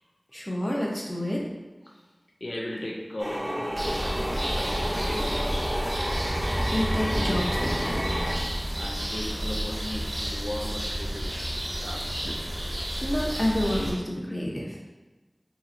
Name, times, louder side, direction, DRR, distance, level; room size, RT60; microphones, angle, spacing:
voice 1, 0.3-1.4 6.7-8.0 13.0-14.8, left 1 dB, 25° left, -3 dB, 0.7 m, -29 dB
voice 2, 2.4-3.8 4.4-5.9 8.5-11.4 11.8-12.3, left 1 dB, 80° left, -2 dB, 0.4 m, -37 dB
sound 1, 3.2-8.4, equal, 15° right, 0.7 m, -31 dB
sound 2, 3.8-13.9, right 1 dB, 60° right, 0.8 m, -30 dB
4.0 x 2.9 x 2.5 m, 1.2 s
wide cardioid pair, 40°, 0 cm